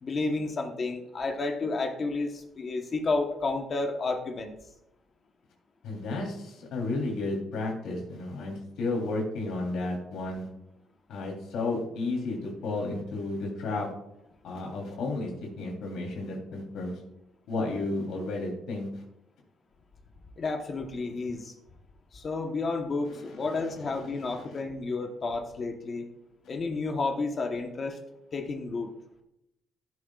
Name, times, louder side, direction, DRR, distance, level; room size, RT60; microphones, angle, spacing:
voice 1, 0.0-4.5 20.4-21.5 22.1-26.1 26.5-28.0 28.3-28.9, left 3 dB, 35° left, 4 dB, 1.1 m, -31 dB
voice 2, 5.8-10.5 11.1-13.9 14.4-15.3 15.6-17.0 17.5-19.0 23.1-24.6, left 2 dB, 80° left, -1 dB, 3.4 m, -33 dB
14.5 x 11.0 x 2.4 m, 0.84 s
cardioid pair, 155°, 0 cm